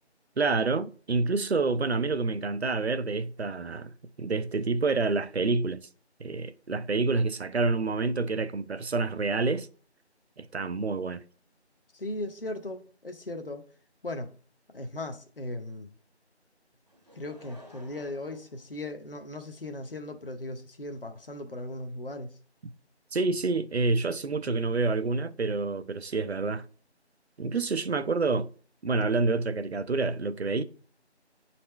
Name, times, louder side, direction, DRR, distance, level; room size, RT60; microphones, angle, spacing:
voice 1, 0.4-3.9 4.2-5.9 6.2-9.7 10.4-11.2 23.1-26.6 27.4-28.5 28.8-30.6, right 3 dB, 65° right, 0.6 m, -28 dB
voice 2, 11.9-13.6 14.0-14.3 14.7-15.9 17.1-22.4, left 2 dB, 55° left, 0.9 m, -37 dB
Laughter / Crowd, 16.9-19.5 20.2-20.3, equal, 35° right, 0.8 m, -54 dB
9.2 x 4.2 x 3.2 m
figure-of-eight pair, 175°, 34 cm